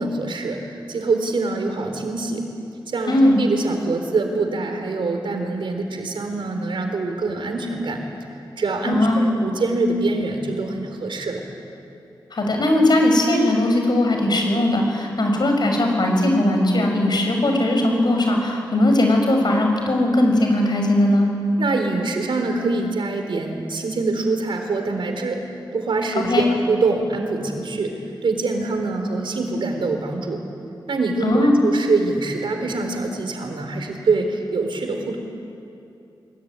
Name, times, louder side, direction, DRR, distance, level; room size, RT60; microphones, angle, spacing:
voice 1, 0.0-2.5 2.9-8.0 8.6-11.4 21.6-25.5 25.7-30.4 30.9-35.2, right 3 dB, 85° right, 4 dB, 4.0 m, -24 dB
voice 2, 3.1-3.4 8.8-9.3 12.3-21.3 26.1-26.5 31.2-31.6, left 1 dB, 60° left, 2 dB, 6.3 m, -19 dB
24.0 x 22.5 x 9.7 m, 2.7 s
wide cardioid pair, 90°, 8 cm